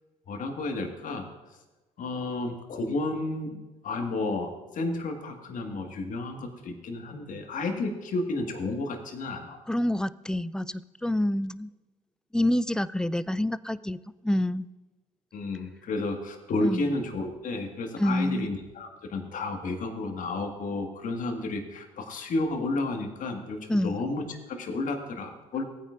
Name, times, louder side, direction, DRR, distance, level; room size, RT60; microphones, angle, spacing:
voice 1, 0.3-1.3 2.0-3.6 3.8-9.6 15.3-25.6, left 2 dB, 50° left, 4 dB, 1.7 m, -32 dB
voice 2, 9.7-11.7 12.3-14.0 14.2-14.7 16.6-16.9 18.0-18.5 23.7-24.0, left 1 dB, 5° left, 18 dB, 0.3 m, -27 dB
18.0 x 9.1 x 2.5 m, 1.1 s
hypercardioid pair, 50°, 17 cm